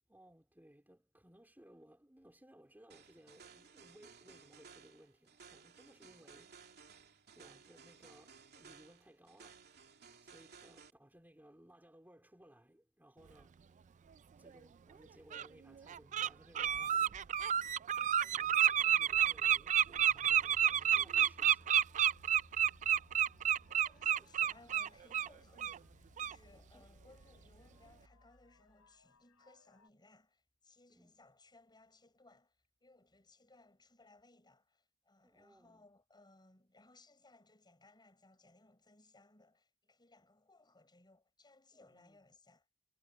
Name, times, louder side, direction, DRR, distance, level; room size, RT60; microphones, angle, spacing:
voice 1, 0.1-6.6 6.9-9.7 10.0-13.6 14.4-17.3 17.8-21.7 22.7-22.8 24.0-24.3 26.5-26.9 30.9-31.1 35.2-35.9 41.7-42.2, right 1 dB, 10° right, 3.1 m, -62 dB
sound 1, 2.9-10.9, right 6 dB, 50° right, 2.7 m, -59 dB
Bird, 14.5-14.6 15.3-15.5 15.9-16.3 16.5-25.3 25.6-25.8 26.2-26.3, right 10 dB, 35° right, 0.3 m, -30 dB
sound 2, 20.1-29.9, left 1 dB, 85° left, 3.3 m, -64 dB
voice 2, 22.8-23.3 23.7-25.7 26.2-42.7, left 2 dB, 20° left, 7.2 m, -65 dB
head